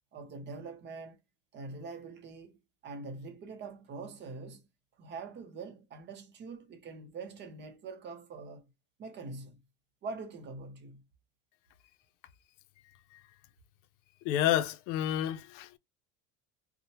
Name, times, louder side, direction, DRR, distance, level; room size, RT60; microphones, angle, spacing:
voice 1, 0.1-1.2 1.5-4.7 5.0-8.6 9.0-9.6 10.0-11.0, right 4 dB, 30° right, 0.6 m, -44 dB
voice 2, 14.3-15.8, left 11 dB, 90° left, 0.5 m, -29 dB
2.8 x 2.1 x 2.8 m
cardioid pair, 135°, 35 cm